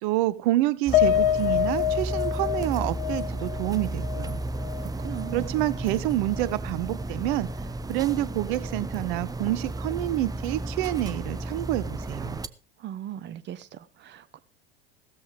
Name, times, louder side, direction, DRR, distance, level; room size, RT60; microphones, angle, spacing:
voice 1, 0.0-4.4 5.3-7.5 7.9-12.4, right 16 dB, 55° right, 0.9 m, -28 dB
Piano, 0.9-5.4 5.8-5.9 6.3-6.5, left 11 dB, 65° left, 0.8 m, -27 dB
sound 1, 0.9-12.5, right 2 dB, 10° right, 0.8 m, -33 dB
voice 2, 4.8-5.5 12.8-14.4, right 11 dB, 40° right, 1.2 m, -39 dB
16.5 x 13.5 x 3.5 m
figure-of-eight pair, 75°, 29 cm